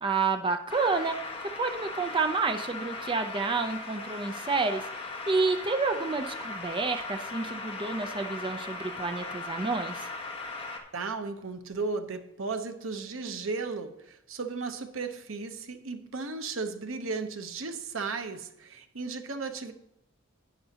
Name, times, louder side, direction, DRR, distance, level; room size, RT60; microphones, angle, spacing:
voice 1, 0.0-1.2 1.6-4.9 5.3-10.1, right 4 dB, 25° right, 6 dB, 0.6 m, -29 dB
sound 1, 0.7-10.8, left 3 dB, 30° left, 1.5 m, -38 dB
voice 2, 10.9-19.7, right 4 dB, 80° right, 7 dB, 0.9 m, -35 dB
11.0 x 9.3 x 2.9 m, 0.82 s
head